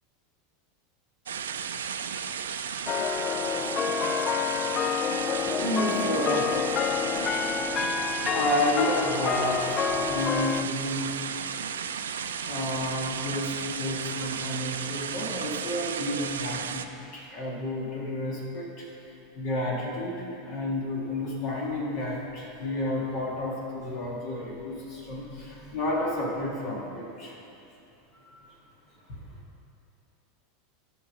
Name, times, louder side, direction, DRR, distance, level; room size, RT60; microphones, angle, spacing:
sound 1, 1.3-16.9, right 7 dB, 75° right, 0.4 m, -34 dB
sound 2, 2.9-10.6, left 7 dB, 35° left, 0.3 m, -28 dB
voice 1, 5.2-7.1 7.4-7.5 7.8-11.2 12.4-16.8 17.1-27.4 28.1-28.4 29.1-29.2, left 1 dB, 55° left, -4 dB, 2.0 m, -31 dB
12.0 x 5.4 x 5.4 m, 2.8 s
hypercardioid pair, 85°, 0 cm